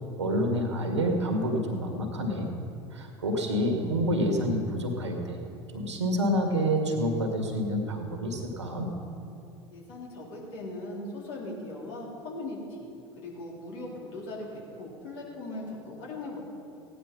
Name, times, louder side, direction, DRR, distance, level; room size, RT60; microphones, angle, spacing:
voice 1, 0.2-2.5 2.9-5.4 5.7-8.9, equal, 80° right, 3 dB, 2.0 m, -28 dB
voice 2, 9.7-16.4, left 2 dB, 65° left, -4 dB, 3.9 m, -39 dB
16.5 x 10.0 x 5.5 m, 2.6 s
figure-of-eight pair, 70°, 15 cm